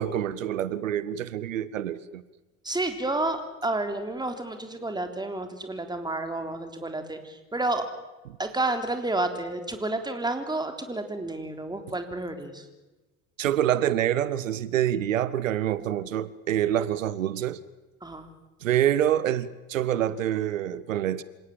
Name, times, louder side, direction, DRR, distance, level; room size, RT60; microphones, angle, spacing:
voice 1, 0.0-2.2 8.2-8.4 13.4-17.6 18.6-21.2, right 11 dB, 75° right, 0.9 m, -26 dB
voice 2, 2.7-7.8 8.4-12.6 18.0-18.2, right 2 dB, 10° right, 3.5 m, -30 dB
27.5 x 17.5 x 7.7 m
figure-of-eight pair, 60°, 39 cm